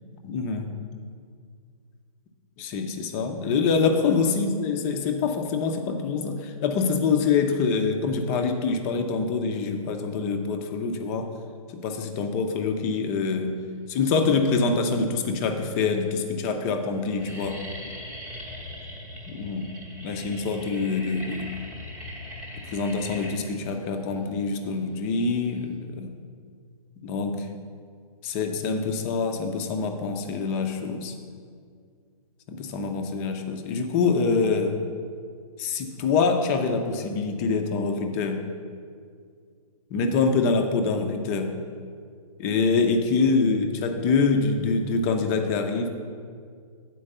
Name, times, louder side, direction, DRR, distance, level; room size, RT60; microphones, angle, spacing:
voice 1, 0.2-0.7 2.6-11.3 11.7-13.6 13.9-17.6 19.3-19.7 20.0-21.5 22.6-26.1 27.0-27.5 28.2-31.1 32.5-34.8 35.6-38.4 39.9-41.6 42.4-45.9, left 4 dB, 25° left, 5 dB, 0.6 m, -25 dB
sound 1, 16.5-16.6 16.8-25.8, left 1 dB, 5° right, 0.9 m, -40 dB
8.8 x 4.6 x 6.7 m, 2.1 s
hypercardioid pair, 150°, 20 cm